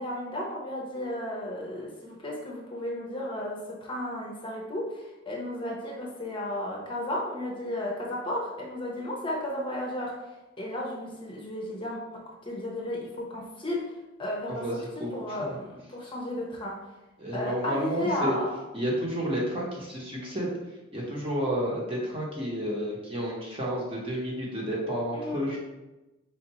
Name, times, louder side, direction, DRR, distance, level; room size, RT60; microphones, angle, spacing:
voice 1, 0.0-10.1 10.6-13.9 14.2-16.7 17.3-18.5 25.1-25.6, left 1 dB, 25° left, -2 dB, 0.7 m, -34 dB
voice 2, 14.5-15.6 17.2-18.4 18.7-20.5 20.9-25.6, equal, 30° right, -3 dB, 1.0 m, -31 dB
4.5 x 3.9 x 3.0 m, 1.1 s
head